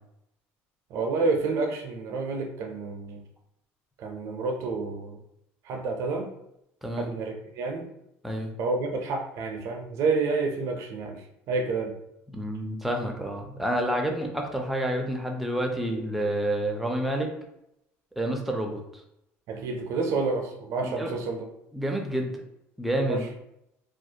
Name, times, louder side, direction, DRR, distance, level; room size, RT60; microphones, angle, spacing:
voice 1, 0.9-3.2 4.0-5.2 5.6-6.3 7.0-7.9 8.6-12.0 19.5-21.5 23.1-23.3, right 3 dB, 60° right, 3 dB, 0.5 m, -29 dB
voice 2, 12.3-17.3 18.2-18.8 20.8-21.1 21.7-22.4 22.8-23.3, right 1 dB, 5° right, 1 dB, 0.4 m, -29 dB
2.3 x 2.0 x 2.7 m, 0.82 s
cardioid pair, 115°, 6 cm